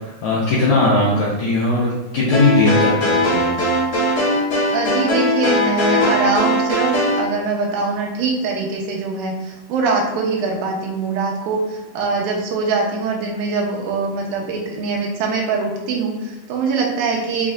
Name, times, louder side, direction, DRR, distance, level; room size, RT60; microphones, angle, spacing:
voice 1, 0.2-3.5, left 2 dB, 80° left, -7 dB, 1.7 m, -18 dB
sound 1, 2.3-7.2, left 1 dB, 50° left, 1.9 m, -19 dB
voice 2, 4.7-17.5, right 4 dB, 80° right, -1 dB, 2.5 m, -23 dB
6.1 x 3.1 x 2.4 m, 1.1 s
omnidirectional pair, 4.2 m